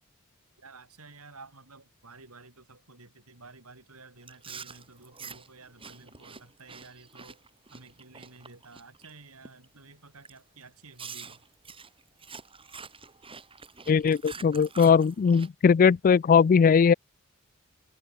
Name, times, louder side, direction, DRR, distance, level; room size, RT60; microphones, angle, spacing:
voice 1, 0.6-7.4 7.7-11.4, right 3 dB, 80° right, 6.3 m, -52 dB
Chewing mastication, 4.2-9.1 9.4-9.8 10.2-10.4 11.0-15.5, right 5 dB, 25° right, 6.0 m, -46 dB
voice 2, 13.9-16.9, left 6 dB, 40° left, 0.3 m, -20 dB
head